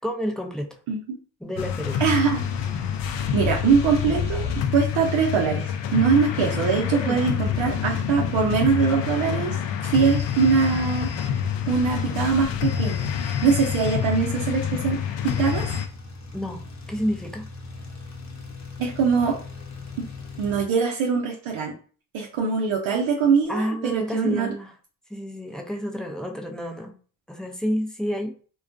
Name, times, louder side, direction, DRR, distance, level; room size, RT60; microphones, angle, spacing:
voice 1, 0.0-0.8 1.4-2.0 6.9-7.8 16.3-17.5 23.5-24.7 25.1-26.9 27.3-28.4, equal, ahead, 2 dB, 0.5 m, -30 dB
voice 2, 0.9-1.2 2.0-2.5 3.3-9.6 9.8-11.1 11.7-15.7 18.8-19.4 20.0-20.1 20.4-21.7 22.1-24.5, right 5 dB, 75° right, -1 dB, 0.7 m, -23 dB
sound 1, 1.6-15.9, left 8 dB, 65° left, 0.5 m, -27 dB
sound 2, 4.2-20.7, left 4 dB, 35° left, 0.8 m, -44 dB
2.3 x 2.2 x 2.5 m, 0.40 s
supercardioid pair, 45°, 49 cm